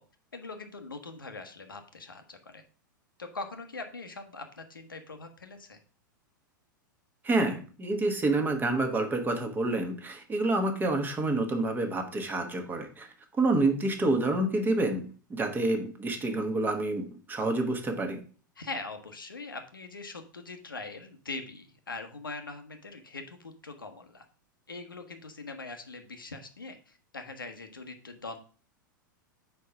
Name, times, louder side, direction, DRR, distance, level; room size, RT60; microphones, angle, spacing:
voice 1, 0.3-2.6 3.2-5.8 18.6-24.3 24.7-28.4, left 3 dB, 85° left, 6 dB, 1.0 m, -42 dB
voice 2, 7.2-13.1 13.4-18.2, right 2 dB, 15° right, 5 dB, 1.2 m, -28 dB
4.7 x 4.5 x 5.5 m, 0.40 s
figure-of-eight pair, 95°, 11 cm